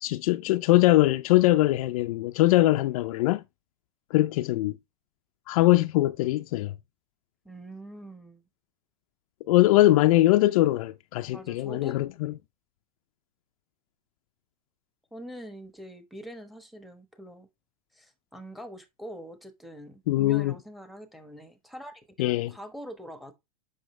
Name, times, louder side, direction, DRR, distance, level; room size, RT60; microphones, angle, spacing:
voice 1, 0.0-3.4 4.1-4.8 5.5-6.7 9.5-12.3 20.1-20.5 22.2-22.5, left 16 dB, 65° left, 0.5 m, -22 dB
voice 2, 7.4-8.4 11.3-12.0 15.1-17.5 17.9-23.3, right 1 dB, ahead, 1.1 m, -44 dB
7.6 x 5.7 x 3.1 m
supercardioid pair, 140°, 20 cm